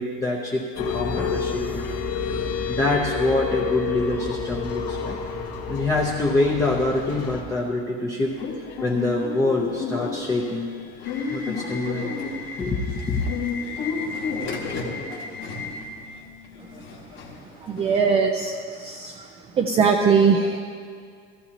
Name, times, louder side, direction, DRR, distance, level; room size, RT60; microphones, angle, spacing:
voice 1, 0.0-1.9 2.7-5.2 5.7-8.4 8.8-10.8 11.3-12.1 12.6-13.2, left 2 dB, 10° left, -3 dB, 0.7 m, -25 dB
sound 1, 0.8-7.4, left 5 dB, 70° left, 1.8 m, -29 dB
Subway metro underground / Alarm, 8.3-18.1, left 4 dB, 40° left, 1.6 m, -32 dB
voice 2, 17.6-18.5 18.8-19.1 19.6-20.6, right 5 dB, 20° right, 3 dB, 0.5 m, -20 dB
16.0 x 15.0 x 2.9 m, 2.2 s
cardioid pair, 170°, 29 cm